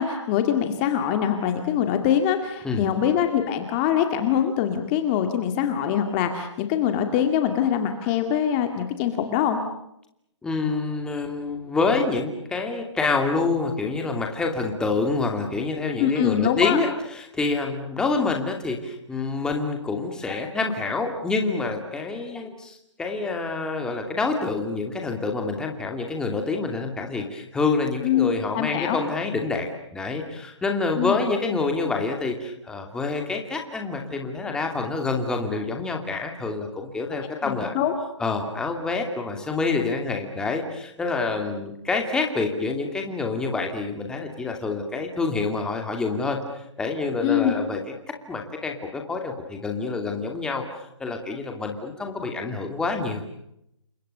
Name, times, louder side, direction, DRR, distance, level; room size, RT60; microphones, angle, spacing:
voice 1, 0.0-9.6 16.0-16.8 28.0-29.0 31.0-31.2 37.7-37.9 47.2-47.5, left 9 dB, 20° left, 6 dB, 2.2 m, -23 dB
voice 2, 10.4-37.7 38.2-46.4 46.8-47.8 48.3-50.6 51.0-53.3, left 3 dB, 5° left, 3 dB, 2.6 m, -27 dB
29.5 x 25.5 x 6.8 m, 0.78 s
hypercardioid pair, 165°, 16 cm